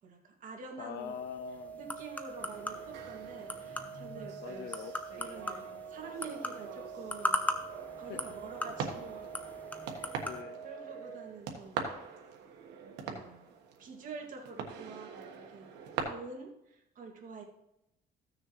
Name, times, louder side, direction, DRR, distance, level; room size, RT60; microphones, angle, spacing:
voice 1, 0.0-1.2 1.7-4.8 5.2-7.7 8.0-9.3 9.9-10.3 10.6-11.9 13.0-13.5 13.8-15.2 15.5-15.7 16.0-17.4, right 4 dB, 50° right, 0 dB, 2.2 m, -47 dB
voice 2, 0.8-1.8 4.4-5.0 8.1-8.2 10.2-10.6, left 8 dB, 70° left, 11 dB, 0.5 m, -42 dB
sound 1, 1.0-10.4, left 1 dB, 10° left, 0.9 m, -40 dB
sound 2, 1.3-11.3, right 7 dB, 90° left, 2.0 m, -47 dB
sound 3, 2.4-16.0, right 6 dB, 85° right, 1.4 m, -44 dB
15.0 x 6.6 x 3.1 m, 0.83 s
cardioid pair, 110°, 17 cm